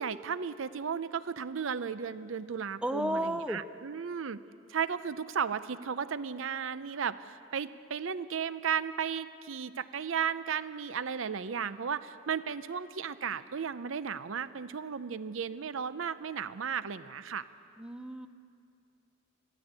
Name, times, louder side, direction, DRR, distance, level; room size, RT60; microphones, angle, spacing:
voice 1, 0.0-4.4 4.7-17.5, right 7 dB, 75° right, 14 dB, 0.6 m, -35 dB
voice 2, 2.8-3.6 17.8-18.3, right 1 dB, 5° right, 10 dB, 0.5 m, -32 dB
20.5 x 14.5 x 8.8 m, 2.5 s
head